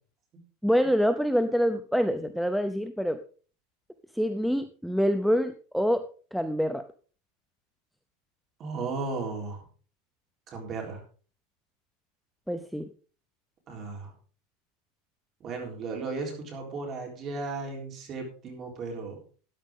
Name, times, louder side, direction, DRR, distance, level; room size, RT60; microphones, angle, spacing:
voice 1, 0.6-3.2 4.1-6.9 12.5-12.9, equal, ahead, 9 dB, 0.5 m, -26 dB
voice 2, 8.6-9.6 10.5-11.0 13.7-14.1 15.4-19.2, right 3 dB, 30° right, 1 dB, 3.8 m, -35 dB
13.5 x 10.0 x 3.7 m, 0.39 s
supercardioid pair, 160°, 0 cm